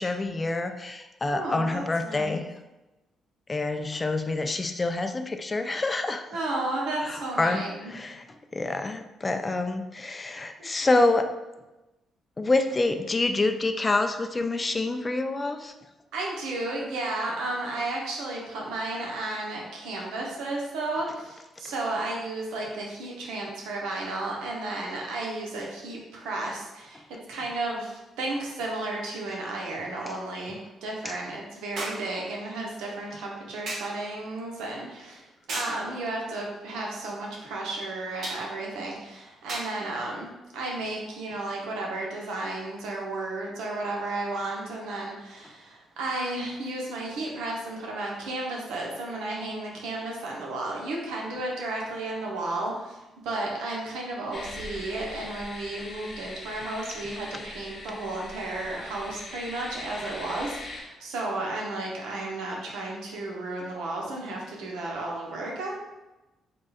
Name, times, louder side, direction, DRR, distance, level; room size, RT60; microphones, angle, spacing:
voice 1, 0.0-2.5 3.5-6.2 7.0-8.3 8.5-11.3 12.4-15.7 30.1-30.2 31.0-31.2, left 2 dB, 25° left, 7 dB, 0.3 m, -27 dB
voice 2, 1.3-2.4 6.3-7.9 10.6-10.7 16.1-27.0 27.3-35.2 35.5-53.0 53.2-65.8, right 2 dB, 90° right, -2 dB, 0.9 m, -33 dB
sound 1, 28.0-28.1 31.8-32.1 33.7-34.0 35.5-35.8 38.2-38.5 39.5-39.8 40.8-41.0, right 2 dB, 60° right, 1.0 m, -34 dB
sound 2, 54.3-60.8, left 2 dB, 45° left, 0.8 m, -41 dB
3.6 x 2.4 x 4.0 m, 1.0 s
cardioid pair, 90°, 0 cm